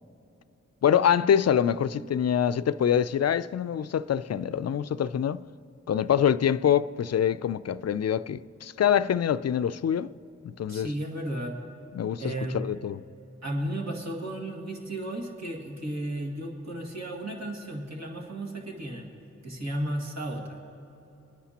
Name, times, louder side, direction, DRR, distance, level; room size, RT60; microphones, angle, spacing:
voice 1, 0.8-5.4 5.9-10.1 10.4-10.9 11.9-13.0, left 9 dB, 60° left, 0.4 m, -25 dB
voice 2, 10.7-11.6 12.2-12.6 13.4-19.1 19.4-20.6, right 1 dB, 65° right, 2.0 m, -34 dB
24.0 x 10.0 x 2.9 m
cardioid pair, 50°, 30 cm